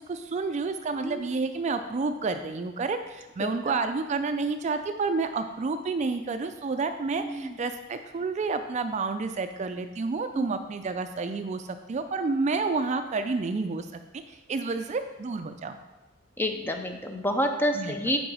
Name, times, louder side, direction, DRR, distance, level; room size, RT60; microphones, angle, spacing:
voice 1, 0.1-13.9 14.3-15.8 17.8-17.9, right 4 dB, 35° right, 8 dB, 0.3 m, -30 dB
voice 2, 3.4-3.8 7.2-7.6 10.3-10.5 16.4-18.2, equal, 10° left, 5 dB, 0.6 m, -29 dB
7.9 x 4.8 x 4.8 m, 1.1 s
head